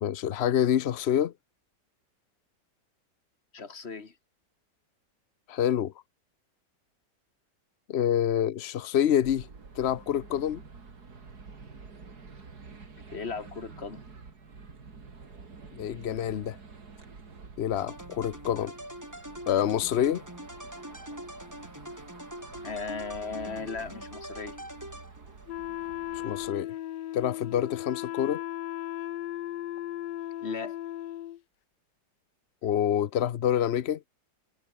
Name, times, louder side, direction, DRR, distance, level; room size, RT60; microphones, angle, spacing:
voice 1, 0.0-1.3 5.5-5.9 7.9-9.5 9.8-10.6 15.8-16.6 17.6-18.7 19.5-20.2 26.1-26.7 27.1-28.4 32.6-34.0, left 10 dB, 60° left, 0.6 m, -27 dB
voice 2, 3.5-4.1 13.1-14.0 22.6-24.6 30.4-30.8, left 4 dB, 35° left, 2.0 m, -37 dB
sound 1, 9.2-26.5, right 4 dB, 60° right, 3.3 m, -49 dB
sound 2, 17.8-25.5, equal, 10° right, 6.5 m, -43 dB
Wind instrument woodwind instrument, 25.5-31.4, left 13 dB, 75° left, 1.4 m, -36 dB
omnidirectional pair, 1.9 m